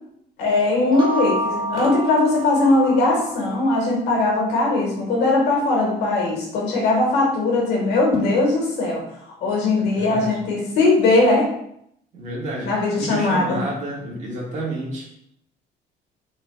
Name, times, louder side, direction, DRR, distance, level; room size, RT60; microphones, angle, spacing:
voice 1, 0.4-9.0 9.4-11.5 12.6-13.6, left 2 dB, 85° left, -2 dB, 1.4 m, -20 dB
sound 1, 0.7-3.5, right 1 dB, 30° right, 1.3 m, -28 dB
voice 2, 9.7-10.4 12.1-15.1, right 1 dB, 45° right, -3 dB, 1.5 m, -30 dB
4.4 x 3.7 x 2.2 m, 0.74 s
cardioid pair, 110°, 17 cm